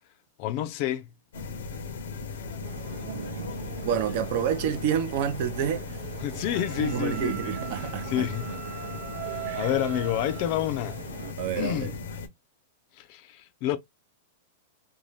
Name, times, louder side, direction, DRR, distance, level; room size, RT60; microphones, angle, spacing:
voice 1, 0.4-1.1 6.2-7.5 7.8-8.6 9.2-11.0 11.6-11.9 13.0-13.8, left 12 dB, 45° left, 0.4 m, -29 dB
sound 1, 1.3-12.3, left 4 dB, 85° left, 0.7 m, -38 dB
sound 2, 2.6-11.3, right 7 dB, 90° right, 0.7 m, -40 dB
voice 2, 3.8-5.9 6.8-8.3 9.4-9.7 11.4-12.0, right 9 dB, 50° right, 0.5 m, -28 dB
Wind instrument woodwind instrument, 6.5-10.6, right 9 dB, 25° right, 1.0 m, -44 dB
2.6 x 2.2 x 3.1 m
supercardioid pair, 145°, 0 cm